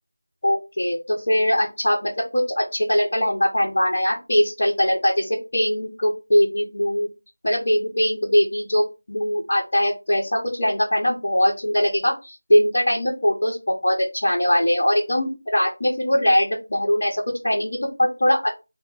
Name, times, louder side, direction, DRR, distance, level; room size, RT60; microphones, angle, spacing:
voice 1, 0.4-7.1 7.4-18.5, equal, 35° left, -4 dB, 1.0 m, -21 dB
4.5 x 2.0 x 3.8 m, 0.27 s
figure-of-eight pair, 180°, 0 cm